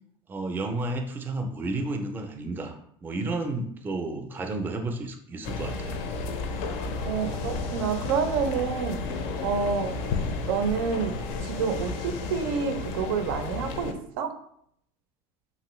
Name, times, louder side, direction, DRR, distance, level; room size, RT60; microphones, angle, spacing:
voice 1, 0.3-2.7 3.0-5.9 7.2-7.4 10.1-10.3, right 2 dB, 15° right, 5 dB, 0.4 m, -32 dB
sound 1, 5.4-13.9, left 4 dB, 70° left, 0.4 m, -32 dB
voice 2, 7.0-9.0 9.4-10.1 10.5-14.4, right 6 dB, 85° right, 7 dB, 0.4 m, -28 dB
3.0 x 2.6 x 3.0 m, 0.69 s
supercardioid pair, 135°, 12 cm